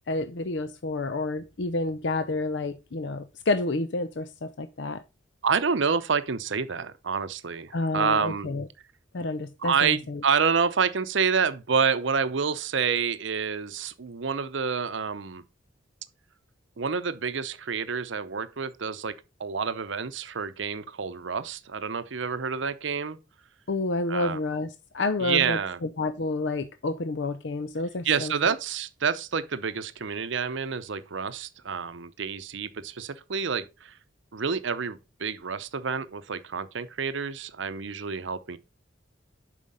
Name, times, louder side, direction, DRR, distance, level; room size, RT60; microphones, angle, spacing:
voice 1, 0.1-5.0 7.7-8.7 9.1-10.2 23.7-28.5, left 2 dB, 65° left, 0.6 m, -29 dB
voice 2, 5.4-8.5 9.6-15.4 16.8-23.2 24.1-24.4 25.2-25.8 28.0-33.9 34.3-38.6, right 6 dB, 70° right, 0.7 m, -28 dB
7.4 x 5.0 x 5.3 m
head